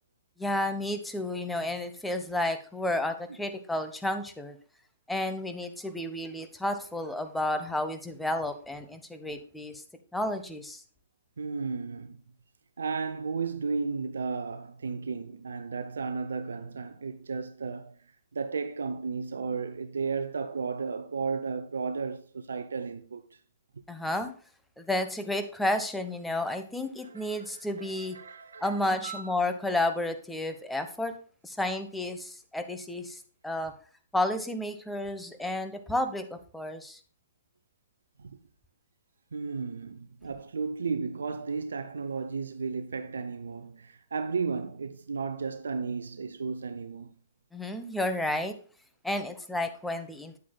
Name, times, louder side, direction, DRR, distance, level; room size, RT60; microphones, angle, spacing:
voice 1, 0.4-4.6 5.1-9.8 10.1-10.8 23.9-24.3 24.8-28.2 28.6-31.1 31.4-33.7 34.1-37.0 47.5-48.6 49.0-50.4, left 1 dB, 5° left, 1.0 m, -31 dB
voice 2, 11.4-12.2 12.8-18.0 18.3-23.2 27.0-28.7 29.0-29.3 38.2-38.3 39.3-47.1, right 5 dB, 75° right, 0.6 m, -34 dB
9.3 x 8.4 x 2.2 m
figure-of-eight pair, 120°, 0 cm